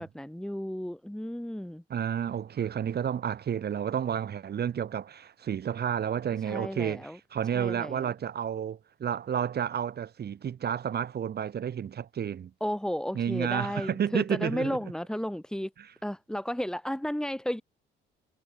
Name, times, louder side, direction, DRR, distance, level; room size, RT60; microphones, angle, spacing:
voice 1, 0.0-1.8 6.5-7.2 7.5-8.1 12.6-15.7 16.0-17.6, equal, 5° left, 4.4 m, -33 dB
voice 2, 1.9-12.5 13.1-14.8, right 8 dB, 55° right, 2.0 m, -31 dB
cardioid pair, 90°, 20 cm